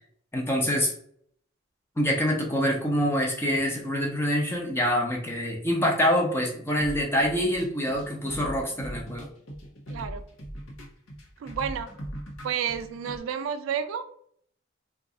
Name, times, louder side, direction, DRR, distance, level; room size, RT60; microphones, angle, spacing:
voice 1, 0.3-0.9 2.0-9.3, equal, 10° left, -1 dB, 0.6 m, -25 dB
sound 1, 6.8-13.2, equal, 85° left, 0.8 m, -40 dB
voice 2, 9.9-10.2 11.4-11.9 12.4-14.0, right 7 dB, 80° right, 10 dB, 0.3 m, -30 dB
2.5 x 2.3 x 3.7 m, 0.64 s
head